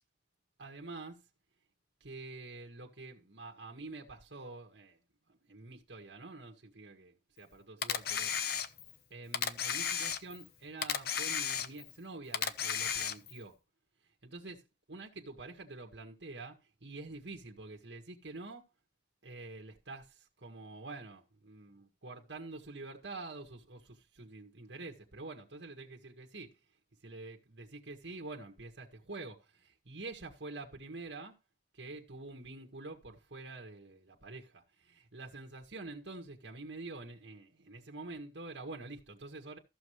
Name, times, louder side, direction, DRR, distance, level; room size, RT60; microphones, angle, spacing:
voice 1, 0.6-1.2 2.0-5.0 5.3-8.3 9.1-13.6 14.2-18.6 19.2-26.5 27.0-31.4 31.7-39.6, right 3 dB, 70° right, 1.7 m, -47 dB
Camera, 7.8-9.0 9.3-10.5 10.8-12.0 12.3-13.4, left 8 dB, 60° left, 0.8 m, -34 dB
14.5 x 6.7 x 3.2 m
head